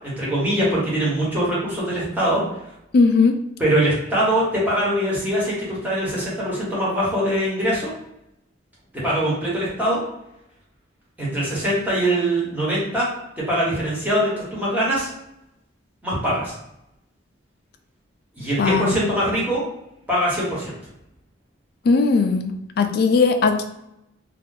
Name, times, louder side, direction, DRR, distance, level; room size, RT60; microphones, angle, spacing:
voice 1, 0.0-2.4 3.6-7.9 9.0-10.0 11.2-13.1 13.5-15.1 16.0-16.5 18.3-19.6 20.1-20.7, right 1 dB, 10° right, -7 dB, 1.1 m, -22 dB
voice 2, 2.9-3.4 18.6-19.0 21.8-23.6, left 4 dB, 50° left, 6 dB, 0.3 m, -18 dB
2.6 x 2.2 x 3.8 m, 0.84 s
head